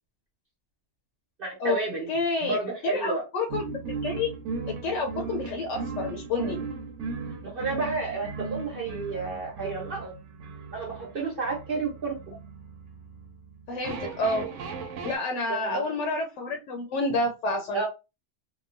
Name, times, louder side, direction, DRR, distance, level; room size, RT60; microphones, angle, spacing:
voice 1, 1.4-2.1 2.4-3.2 7.4-10.1 10.7-12.3 15.6-16.0 17.7-17.9, right 3 dB, 50° right, -2 dB, 1.0 m, -31 dB
voice 2, 2.1-2.6 2.8-4.3 4.7-6.6 13.7-14.5 15.0-17.9, left 2 dB, 85° left, 2 dB, 0.9 m, -29 dB
sound 1, 3.5-15.2, right 4 dB, 90° right, 0.9 m, -37 dB
2.8 x 2.1 x 2.5 m, 0.27 s
omnidirectional pair, 1.2 m